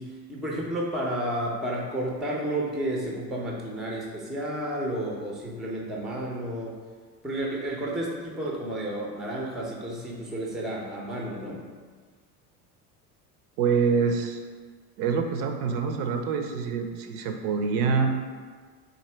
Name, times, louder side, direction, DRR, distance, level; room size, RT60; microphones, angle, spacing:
voice 1, 0.0-6.8 7.2-11.6, right 1 dB, ahead, -2 dB, 0.4 m, -31 dB
voice 2, 13.6-14.4 15.0-18.1, right 5 dB, 60° right, 5 dB, 0.6 m, -25 dB
3.8 x 2.6 x 3.2 m, 1.5 s
hypercardioid pair, 80°, 48 cm